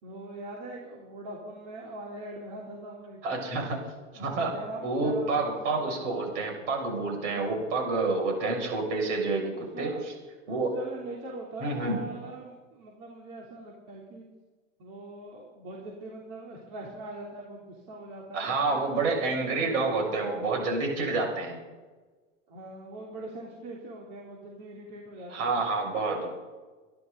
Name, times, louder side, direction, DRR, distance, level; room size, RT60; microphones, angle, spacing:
voice 1, 0.0-3.2 4.1-5.9 7.4-7.6 9.7-10.0 10.7-14.3 14.8-20.4 22.5-25.5, right 2 dB, 50° right, -3 dB, 3.5 m, -42 dB
voice 2, 3.2-3.8 4.1-4.6 4.8-9.9 10.5-10.8 11.6-12.0 18.3-21.6 25.3-26.3, right 3 dB, 65° right, 1 dB, 6.6 m, -28 dB
25.0 x 12.0 x 4.0 m, 1.3 s
hypercardioid pair, 130°, 39 cm